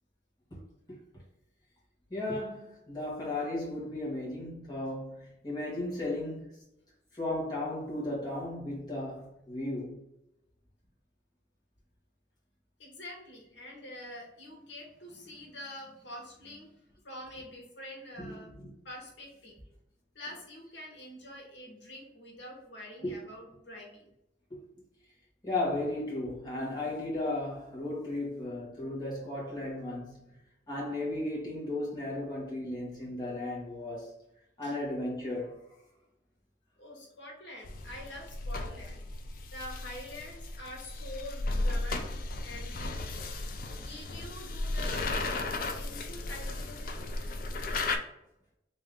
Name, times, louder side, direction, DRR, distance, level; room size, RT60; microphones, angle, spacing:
voice 1, 2.1-6.5 7.1-9.9 18.2-18.7 20.2-20.4 23.0-23.2 24.5-24.6 25.4-30.2 30.7-34.2 34.6-35.7 42.5-42.6, left 2 dB, 20° left, 1.1 m, -35 dB
voice 2, 12.8-18.5 18.8-19.6 20.1-24.1 34.6-34.7 36.8-39.0 39.5-43.3 43.8-45.1 45.7-47.1, left 1 dB, 80° left, 1.2 m, -46 dB
sound 1, 37.6-48.0, left 2 dB, 50° left, 0.4 m, -35 dB
3.4 x 2.7 x 3.5 m
head